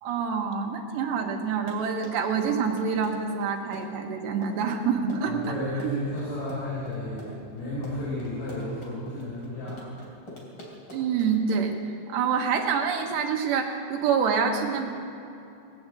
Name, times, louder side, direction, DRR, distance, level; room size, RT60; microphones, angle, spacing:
voice 1, 0.0-5.4 5.8-6.0 10.9-11.7 12.1-14.9, right 6 dB, 85° right, 2 dB, 3.5 m, -26 dB
Run, 1.4-11.8, left 1 dB, 30° left, 3.0 m, -45 dB
voice 2, 5.2-10.0, left 1 dB, 55° left, -8 dB, 5.9 m, -33 dB
19.5 x 9.5 x 7.9 m, 2.7 s
omnidirectional pair, 4.9 m